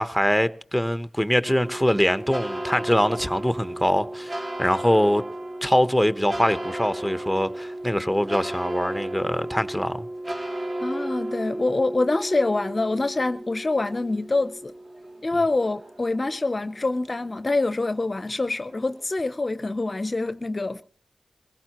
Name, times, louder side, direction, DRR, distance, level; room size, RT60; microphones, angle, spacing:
voice 1, 0.0-5.2 5.6-10.5, equal, ahead, 0.9 m, -23 dB
sound 1, 1.4-19.0, right 1 dB, 40° right, 2.7 m, -35 dB
voice 2, 10.8-14.7 15.2-20.8, left 2 dB, 35° left, 0.6 m, -25 dB
22.5 x 16.0 x 3.0 m
cardioid pair, 60°, 0 cm